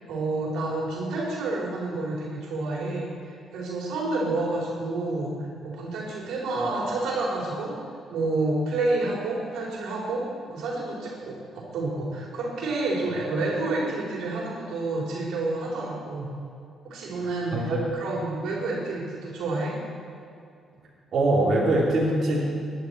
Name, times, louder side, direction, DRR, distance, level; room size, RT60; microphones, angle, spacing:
voice 1, 0.0-5.3 5.6-7.7 8.1-16.3 16.8-19.7, right 2 dB, 85° right, -4 dB, 3.9 m, -29 dB
voice 2, 17.5-17.9 21.1-22.4, right 2 dB, 60° right, -6 dB, 3.3 m, -22 dB
18.0 x 11.0 x 4.7 m, 2.4 s
cardioid pair, 90°, 0 cm